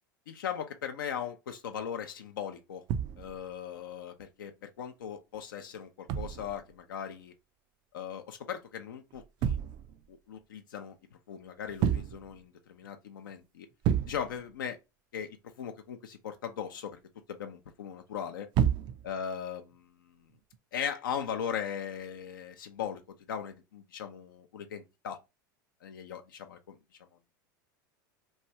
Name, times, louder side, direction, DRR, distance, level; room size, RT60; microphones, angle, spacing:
voice 1, 0.3-2.8 3.2-4.5 4.8-7.3 7.9-9.6 10.1-13.7 14.1-14.8 15.1-17.0 17.3-18.5 19.0-20.2 20.7-23.0 23.3-25.2 25.8-26.8, left 8 dB, 80° left, 0.5 m, -39 dB
sound 1, 2.9-3.5 6.1-6.7 9.1-10.1 11.7-12.4 12.8-12.9 13.3-13.4 13.8-14.5 18.5-19.2 20.3-20.6, right 9 dB, 45° right, 0.4 m, -30 dB
3.1 x 2.3 x 2.7 m
hypercardioid pair, 90°, 11 cm